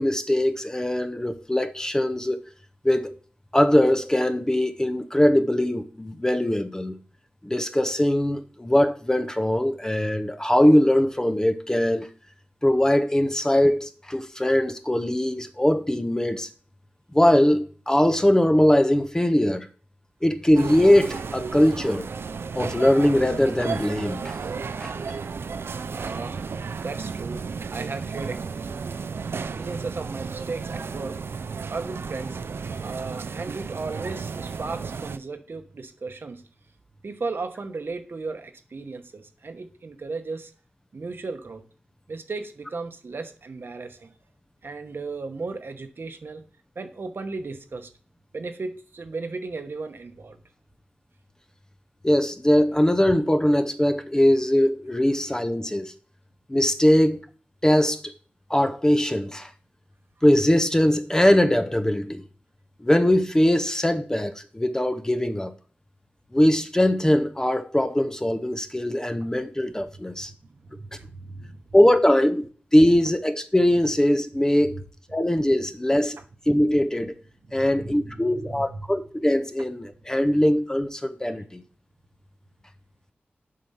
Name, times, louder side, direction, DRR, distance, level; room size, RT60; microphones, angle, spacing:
voice 1, 0.0-2.4 2.8-3.1 3.5-7.0 7.4-12.1 12.6-16.5 17.1-19.7 20.2-22.1 22.5-24.3 24.8-24.9 52.0-55.9 56.5-57.3 57.6-58.1 58.5-59.5 60.2-62.2 62.8-65.5 66.3-70.3 71.7-74.8 75.1-76.2 76.5-77.1 77.5-81.6, left 1 dB, 15° left, 0.6 m, -21 dB
sound 1, 20.5-35.2, right 5 dB, 85° right, 0.4 m, -33 dB
voice 2, 25.9-26.4 26.8-28.7 29.3-31.2 31.7-32.4 32.8-36.4 37.0-40.5 40.9-41.6 42.1-44.1 44.6-46.5 46.7-47.9 48.3-50.4 69.9-70.0 70.5-71.6 74.7-74.8 77.4-78.8 81.3-81.4, right 3 dB, 70° right, 1.0 m, -35 dB
7.6 x 4.2 x 5.6 m
wide cardioid pair, 95°, 4 cm